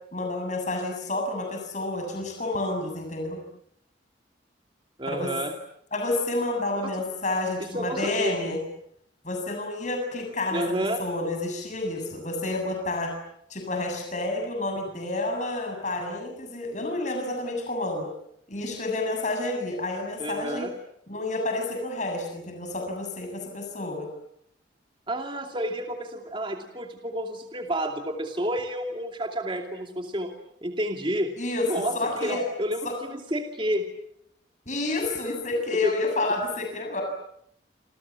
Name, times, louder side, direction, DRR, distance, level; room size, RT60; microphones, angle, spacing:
voice 1, 0.1-3.4 5.1-5.3 5.9-8.6 9.2-13.1 13.5-18.1 18.5-20.7 21.1-24.1 31.4-31.7 31.9-32.4 32.8-33.0 34.7-37.0, left 2 dB, 40° left, 4 dB, 7.5 m, -29 dB
voice 2, 5.0-5.5 6.8-6.9 7.6-8.4 10.5-11.0 20.2-20.7 25.1-30.3 30.6-31.3 31.7-33.9 35.8-35.9, right 1 dB, 25° right, 4 dB, 2.6 m, -30 dB
28.5 x 28.0 x 7.3 m, 0.73 s
head